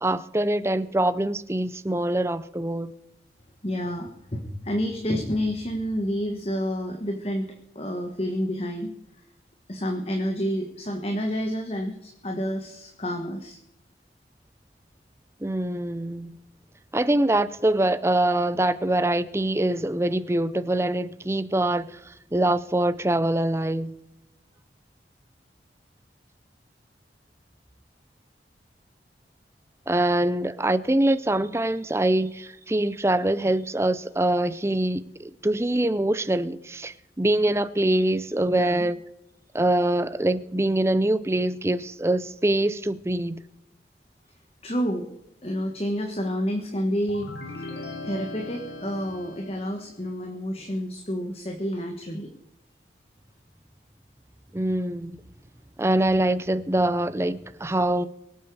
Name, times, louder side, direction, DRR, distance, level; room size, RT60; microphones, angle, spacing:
voice 1, 0.0-2.9 15.4-16.4 16.9-23.9 29.9-39.0 39.5-43.4 54.5-55.2 55.8-58.1, right 1 dB, 15° right, 0.6 m, -24 dB
voice 2, 3.6-7.5 7.7-8.9 9.7-13.6 38.5-38.9 44.6-45.1 45.4-52.3, equal, 35° left, 1.4 m, -29 dB
sound 1, 47.1-49.9, left 2 dB, 85° left, 2.8 m, -39 dB
23.5 x 8.5 x 4.8 m
head